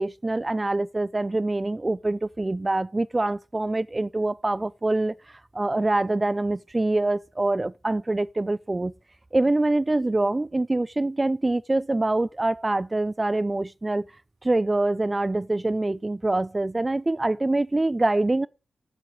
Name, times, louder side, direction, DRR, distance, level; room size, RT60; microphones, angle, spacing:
voice 1, 0.0-8.9 9.3-14.1 14.4-18.5, right 2 dB, 30° right, 0.4 m, -25 dB
7.7 x 7.1 x 7.6 m
supercardioid pair, 40°, 0 cm